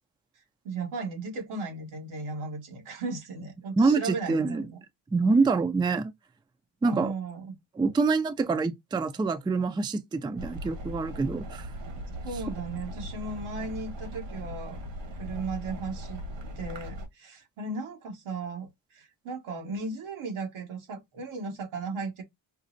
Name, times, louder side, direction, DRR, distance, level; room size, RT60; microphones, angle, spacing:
voice 1, 0.6-4.8 6.8-7.6 12.2-14.8 15.2-16.2 16.6-22.2, right 3 dB, 85° right, 1.5 m, -36 dB
voice 2, 3.8-4.6 5.1-6.1 6.8-7.1 7.8-11.7, right 4 dB, 10° right, 0.4 m, -26 dB
sound 1, 10.4-17.1, equal, 65° right, 1.4 m, -39 dB
5.1 x 2.0 x 2.5 m
cardioid pair, 70°, 47 cm